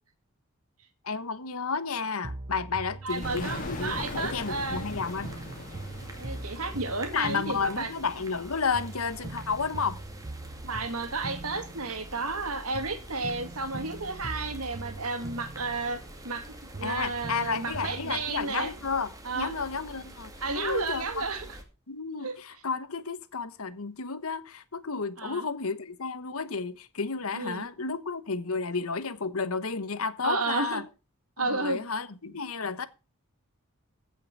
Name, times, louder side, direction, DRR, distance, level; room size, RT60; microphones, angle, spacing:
voice 1, 1.0-5.4 7.1-10.0 16.8-21.2 21.9-30.8 31.4-32.9, left 5 dB, 75° left, 1.2 m, -32 dB
sound 1, 2.2-4.4 4.7-8.4 8.7-12.4 12.7-16.4 16.7-18.3, right 2 dB, 30° right, 0.6 m, -42 dB
voice 2, 3.0-4.8 6.2-7.9 10.6-16.0 16.2-18.7 19.2-19.5 20.4-21.6 22.2-22.4 25.2-25.4 27.3-27.6 30.2-30.8 31.4-31.8, right 3 dB, 90° right, 2.3 m, -32 dB
sound 2, 3.1-21.6, right 1 dB, 15° right, 2.4 m, -46 dB
sound 3, 3.2-7.9, left 1 dB, 40° left, 2.6 m, -40 dB
16.0 x 5.9 x 6.0 m
head